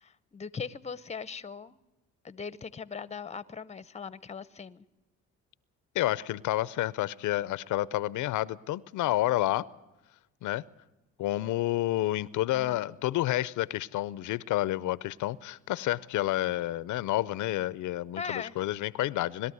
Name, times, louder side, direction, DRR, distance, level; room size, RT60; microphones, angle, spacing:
voice 1, 0.0-1.8 2.2-4.8 12.5-12.8 18.2-18.5, left 6 dB, 20° left, 0.8 m, -39 dB
voice 2, 5.9-9.7 10.4-10.6 11.2-19.5, left 15 dB, 80° left, 0.6 m, -29 dB
21.0 x 13.0 x 9.5 m
cardioid pair, 90°, 30 cm